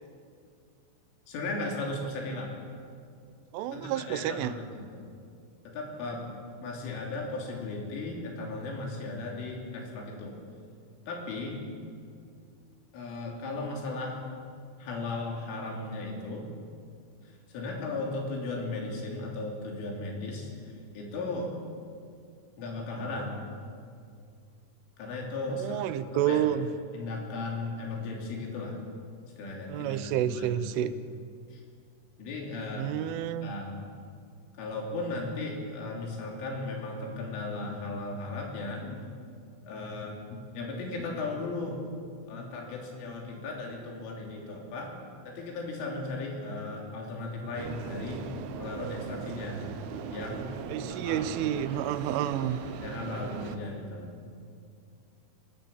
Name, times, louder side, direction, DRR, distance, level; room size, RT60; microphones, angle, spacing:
voice 1, 1.3-2.5 3.7-5.1 5.7-6.3 6.6-10.4 11.1-11.6 12.9-14.2 14.8-16.5 17.2-21.5 22.6-23.4 25.0-25.9 26.1-26.4 26.9-28.8 29.4-30.5 31.5-31.6 32.2-32.9 33.4-33.8 34.6-39.1 39.7-41.8 42.3-44.9 45.3-48.3 48.6-49.7 50.1-50.6 50.9-51.2 52.8-54.1, left 2 dB, 90° left, 0 dB, 5.7 m, -36 dB
voice 2, 3.5-4.5 25.5-26.7 29.7-30.9 32.8-33.5 50.7-52.6, right 11 dB, 85° right, 13 dB, 3.4 m, -29 dB
sound 1, 47.6-53.6, right 7 dB, 70° right, 2.7 m, -39 dB
24.0 x 17.0 x 7.1 m, 2.3 s
omnidirectional pair, 5.5 m